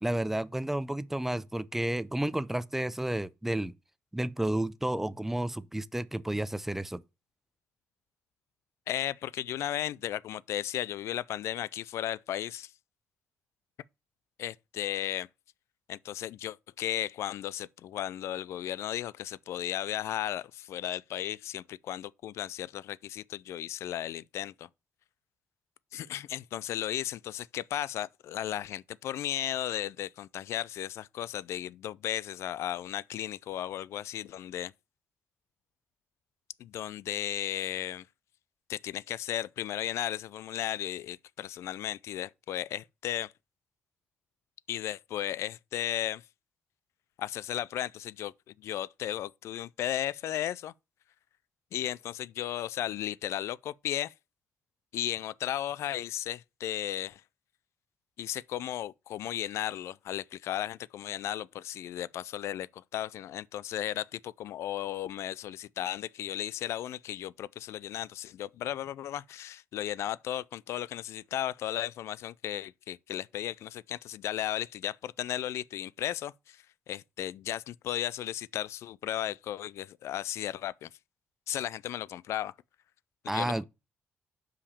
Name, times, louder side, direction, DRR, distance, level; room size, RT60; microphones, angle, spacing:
voice 1, 0.0-3.7 4.1-7.0 83.3-83.6, right 1 dB, 5° right, 0.5 m, -31 dB
voice 2, 8.9-12.7 14.4-15.3 15.9-24.7 25.9-34.7 36.6-38.0 38.7-43.3 44.7-46.2 47.2-50.7 51.7-54.1 54.9-57.2 58.2-80.9 81.5-82.5 83.2-83.6, left 12 dB, 75° left, 0.3 m, -35 dB
5.7 x 5.0 x 6.7 m
cardioid pair, 105°, 5 cm